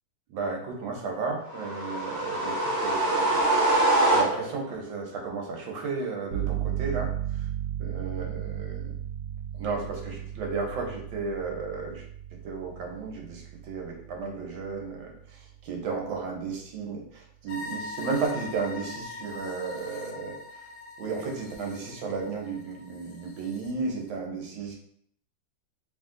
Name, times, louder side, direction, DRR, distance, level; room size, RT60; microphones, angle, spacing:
voice 1, 0.3-3.4 4.1-7.4 7.8-8.9 9.5-12.0 12.4-20.4 21.0-24.7, right 4 dB, 80° right, 1 dB, 1.7 m, -34 dB
sound 1, 1.5-4.7, right 2 dB, 45° right, 1.0 m, -24 dB
sound 2, 6.3-16.8, right 11 dB, 65° right, 0.9 m, -36 dB
sound 3, 17.5-23.7, left 3 dB, 85° left, 1.5 m, -42 dB
3.4 x 3.1 x 3.7 m, 0.64 s
omnidirectional pair, 2.1 m